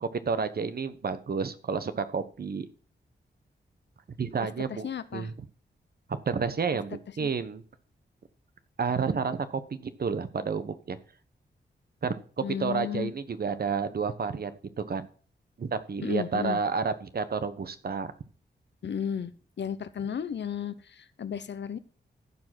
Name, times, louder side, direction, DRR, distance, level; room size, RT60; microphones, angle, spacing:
voice 1, 0.0-2.7 4.2-5.3 6.3-7.6 8.8-11.0 12.0-12.1 12.6-15.1 15.6-18.1, right 5 dB, 55° right, 11 dB, 1.1 m, -30 dB
voice 2, 4.7-5.3 7.2-7.3 12.4-13.1 16.0-16.6 18.8-19.3 19.6-21.8, left 8 dB, 75° left, 13 dB, 0.9 m, -33 dB
14.5 x 5.0 x 6.0 m, 0.41 s
cardioid pair, 75°, 18 cm